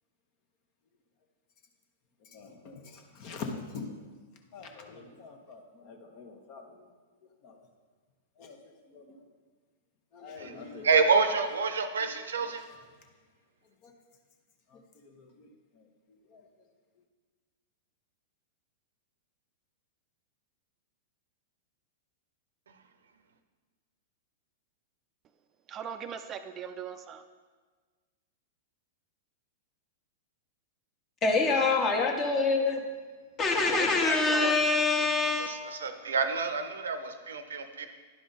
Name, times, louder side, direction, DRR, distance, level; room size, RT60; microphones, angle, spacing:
voice 1, 2.3-3.9 4.5-6.9 7.4-7.6 8.4-8.6 8.9-9.2 10.1-11.0 11.8-12.5 13.8-13.9 14.7-14.8 15.0-15.5 16.3-16.4, left 4 dB, 50° left, 4 dB, 1.1 m, -44 dB
voice 2, 10.4-12.6 34.0-34.5 35.4-37.9, right 5 dB, 80° right, 9 dB, 0.6 m, -28 dB
voice 3, 25.7-27.2 33.7-34.6, right 7 dB, 30° right, 8 dB, 0.4 m, -38 dB
voice 4, 31.2-32.8 33.4-35.5, left 3 dB, 30° left, 2 dB, 1.3 m, -25 dB
10.5 x 5.0 x 4.1 m, 1.4 s
hypercardioid pair, 105°, 0 cm